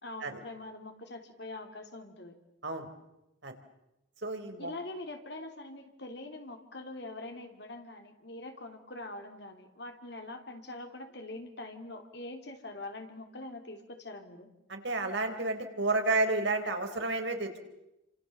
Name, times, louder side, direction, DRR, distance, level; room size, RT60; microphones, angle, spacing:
voice 1, 0.0-2.3 4.6-14.5, left 2 dB, 60° left, 5 dB, 3.4 m, -44 dB
voice 2, 4.2-4.7 14.7-17.6, right 2 dB, 65° right, 5 dB, 4.0 m, -31 dB
30.0 x 26.5 x 7.1 m, 0.90 s
head